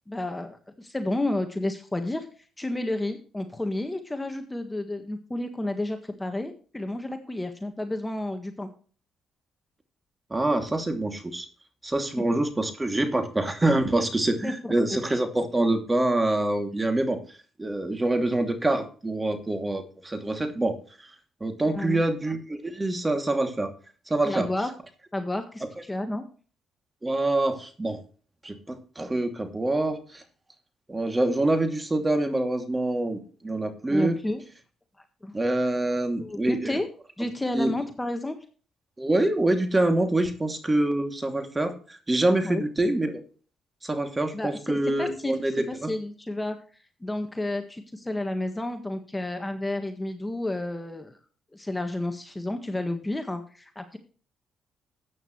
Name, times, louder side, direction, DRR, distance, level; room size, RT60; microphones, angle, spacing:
voice 1, 0.1-2.3 2.6-8.7 14.4-15.0 21.6-22.0 24.2-24.7 25.1-26.2 33.9-34.4 35.2-35.3 36.2-36.9 37.2-38.4 42.4-42.6 44.3-45.4 45.7-46.6 47.0-51.2 51.5-54.0, left 1 dB, 15° left, 6 dB, 1.5 m, -31 dB
voice 2, 10.3-11.5 11.8-17.2 17.6-20.8 21.4-23.7 24.1-24.5 27.0-28.0 28.4-30.2 30.9-34.2 35.3-36.8 37.5-37.7 39.0-43.2 43.8-45.9, right 2 dB, 20° right, 6 dB, 2.6 m, -25 dB
14.0 x 9.1 x 3.2 m, 0.39 s
cardioid pair, 90°, 0 cm